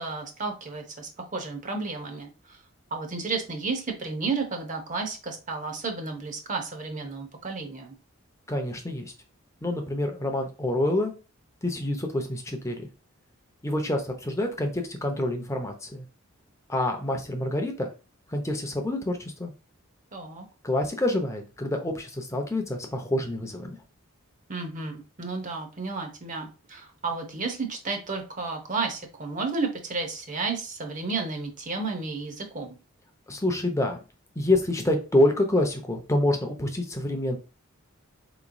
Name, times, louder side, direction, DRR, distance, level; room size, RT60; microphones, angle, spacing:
voice 1, 0.0-2.6 2.9-7.9 20.1-20.5 24.5-32.8, right 4 dB, 35° right, 4 dB, 0.7 m, -32 dB
voice 2, 8.5-9.1 9.6-11.1 11.6-12.9 13.6-16.0 16.7-17.9 18.3-19.5 20.6-23.8 33.3-34.0 34.4-37.4, left 1 dB, 15° left, 4 dB, 0.6 m, -27 dB
4.2 x 3.0 x 2.6 m, 0.32 s
head